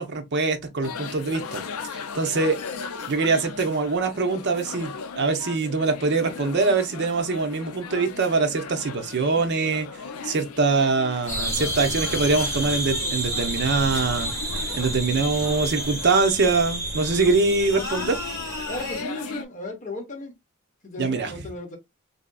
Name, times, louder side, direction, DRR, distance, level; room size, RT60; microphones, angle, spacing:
voice 1, 0.0-1.6 1.9-2.6 3.1-9.9 10.2-14.3 14.7-18.2 21.0-21.3, right 4 dB, 50° right, 0.6 m, -23 dB
sound 1, 0.8-19.5, left 5 dB, 80° left, 0.4 m, -37 dB
sound 2, 11.3-19.0, right 1 dB, 15° right, 1.5 m, -30 dB
voice 2, 18.7-20.3 20.8-21.8, left 1 dB, 35° left, 1.0 m, -35 dB
3.4 x 2.6 x 2.2 m
head